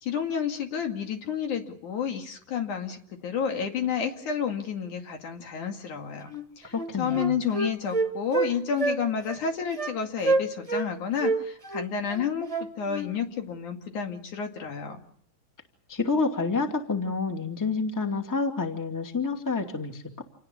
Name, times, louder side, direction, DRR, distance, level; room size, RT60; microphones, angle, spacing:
voice 1, 0.0-12.5 12.8-15.1, left 7 dB, 65° left, 4 dB, 3.7 m, -30 dB
Wind instrument woodwind instrument, 6.3-6.4 6.7-8.5 8.8-9.0 9.3-9.4 9.8-10.0 10.2-10.9 11.2-13.1, right 3 dB, 10° right, 2.0 m, -27 dB
voice 2, 6.7-7.4 15.9-20.2, left 4 dB, 5° left, 4 dB, 2.0 m, -28 dB
28.5 x 19.0 x 7.2 m, 0.63 s
omnidirectional pair, 3.8 m